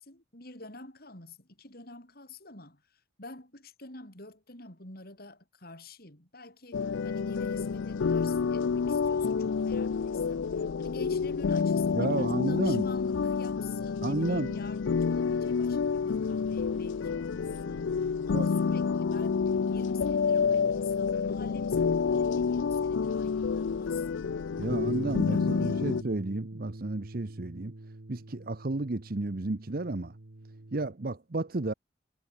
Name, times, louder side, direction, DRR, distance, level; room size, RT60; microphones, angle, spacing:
voice 1, 0.0-24.3 25.2-25.9, left 3 dB, 55° left, 6.5 m, -48 dB
sound 1, 6.7-26.0, left 5 dB, 90° left, 0.4 m, -29 dB
voice 2, 11.9-12.9 14.0-14.6 18.3-18.5 24.6-27.7 28.1-30.1 30.7-31.7, right 2 dB, 50° right, 0.9 m, -32 dB
Bass guitar, 24.7-30.9, right 1 dB, 75° right, 1.4 m, -43 dB
head